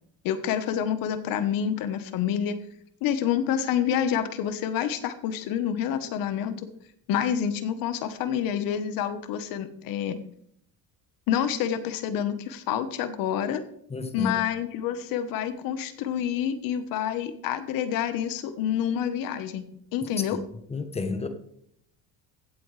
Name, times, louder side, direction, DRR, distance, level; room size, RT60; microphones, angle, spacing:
voice 1, 0.2-2.6 3.0-6.7 7.1-10.2 11.3-13.6 14.1-20.4, left 9 dB, 70° left, 11 dB, 1.3 m, -28 dB
voice 2, 13.9-14.4 20.7-21.3, left 4 dB, 15° left, 8 dB, 1.1 m, -30 dB
16.0 x 8.5 x 3.4 m, 0.69 s
cardioid pair, 145°, 36 cm